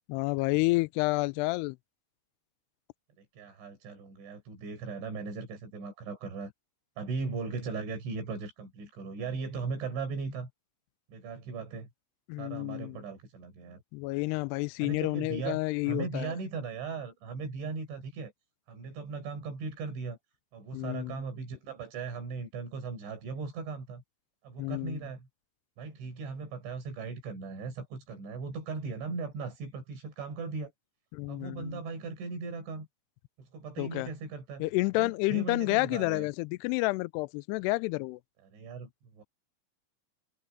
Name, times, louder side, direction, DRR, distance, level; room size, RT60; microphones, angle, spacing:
voice 1, 0.1-1.8 12.3-13.0 13.9-16.3 20.7-21.2 24.6-25.0 31.1-31.8 33.8-34.1 34.6-38.2, left 23 dB, 85° left, 2.4 m, -30 dB
voice 2, 3.2-6.5 7.0-10.5 11.1-11.9 12.4-13.8 14.8-15.6 15.8-18.3 18.7-20.2 20.5-24.0 24.4-25.3 25.8-30.7 31.3-32.9 33.4-34.6 35.0-36.3 38.5-39.2, right 4 dB, 90° right, 7.9 m, -38 dB
omnidirectional pair, 5.2 m